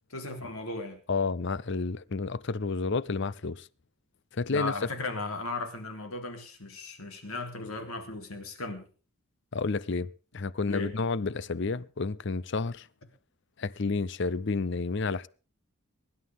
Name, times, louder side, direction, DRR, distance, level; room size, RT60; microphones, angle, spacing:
voice 1, 0.1-1.0 4.5-8.8 10.7-10.9, left 2 dB, 85° left, 3.7 m, -36 dB
voice 2, 1.1-3.7 4.3-4.7 9.5-12.9 13.6-15.3, left 4 dB, 55° left, 0.6 m, -30 dB
23.0 x 11.5 x 3.7 m
head